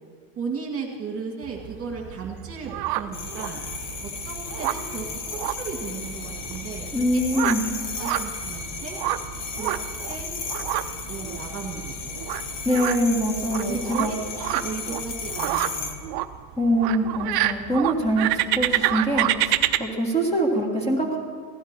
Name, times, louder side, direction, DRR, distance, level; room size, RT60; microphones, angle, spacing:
voice 1, 0.4-3.6 4.0-7.2 7.6-9.0 9.6-9.7 10.1-10.3 11.1-12.1 13.6-15.9, right 5 dB, 25° right, 0 dB, 1.9 m, -35 dB
sound 1, 1.4-19.8, right 14 dB, 45° right, 0.6 m, -29 dB
sound 2, 3.1-15.9, left 4 dB, 55° left, 1.5 m, -34 dB
voice 2, 6.9-7.7 12.7-14.1 16.6-19.5 19.8-21.2, equal, 10° left, -1 dB, 1.9 m, -24 dB
16.0 x 11.0 x 4.5 m, 2.1 s
supercardioid pair, 130°, 50 cm